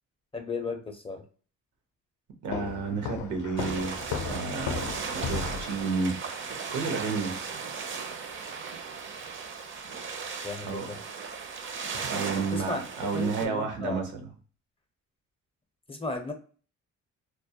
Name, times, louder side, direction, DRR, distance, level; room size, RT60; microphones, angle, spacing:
voice 1, 0.3-1.3 10.4-11.0 12.5-12.8 13.1-14.1 15.9-16.3, left 3 dB, 20° left, 5 dB, 0.5 m, -35 dB
voice 2, 2.4-4.8 5.1-6.2 6.7-7.4 10.6-10.9 12.1-14.2, right 4 dB, 80° right, 4 dB, 0.7 m, -31 dB
Walk footsteps, 2.5-5.8, left 7 dB, 70° left, 0.4 m, -35 dB
sound 1, 3.6-13.5, right 5 dB, 40° right, 0.5 m, -37 dB
2.2 x 2.0 x 2.7 m, 0.40 s
cardioid pair, 90°, 30 cm